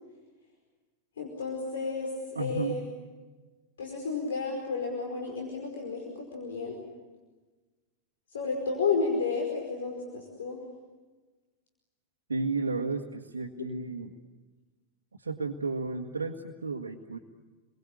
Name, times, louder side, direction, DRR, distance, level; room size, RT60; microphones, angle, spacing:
voice 1, 1.2-2.1 2.4-2.8 3.8-6.8 8.3-10.6 13.6-13.7, left 4 dB, 65° left, 1 dB, 5.0 m, -32 dB
voice 2, 2.4-2.8 12.3-14.1 15.2-17.2, right 3 dB, 75° right, 0 dB, 1.8 m, -33 dB
29.5 x 23.5 x 8.7 m, 1.3 s
figure-of-eight pair, 90°, 0 cm